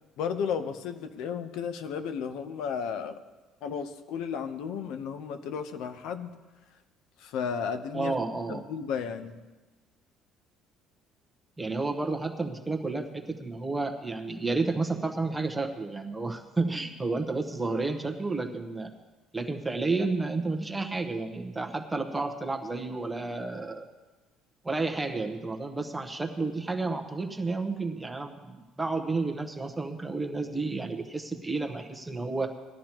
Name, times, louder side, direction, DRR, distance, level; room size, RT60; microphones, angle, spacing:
voice 1, 0.2-3.2 3.6-6.3 7.2-8.2 8.5-9.4, left 7 dB, 70° left, 8 dB, 0.9 m, -33 dB
voice 2, 7.9-8.6 11.6-18.9 19.3-23.8 24.6-32.5, right 3 dB, 10° right, 4 dB, 0.9 m, -31 dB
19.0 x 12.0 x 3.0 m, 1.2 s
cardioid pair, 155°, 0 cm